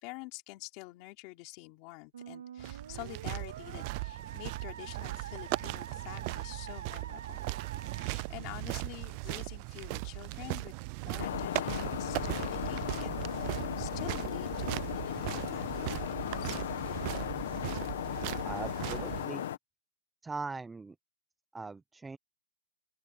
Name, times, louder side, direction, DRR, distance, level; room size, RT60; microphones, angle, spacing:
voice 1, 0.0-7.5 7.9-10.7 11.0-13.3 13.8-17.0, left 23 dB, 30° left, 3.7 m, -47 dB
Musical instrument, 2.1-9.0, right 8 dB, 80° right, 2.3 m, -47 dB
sound 1, 2.6-19.3, right 27 dB, 30° right, 0.4 m, -38 dB
Seagull City, 11.2-19.6, left 11 dB, 55° left, 1.7 m, -36 dB
voice 2, 18.4-19.5 20.2-21.0 21.5-22.2, right 3 dB, 5° right, 0.9 m, -40 dB
open air
hypercardioid pair, 170°, 0 cm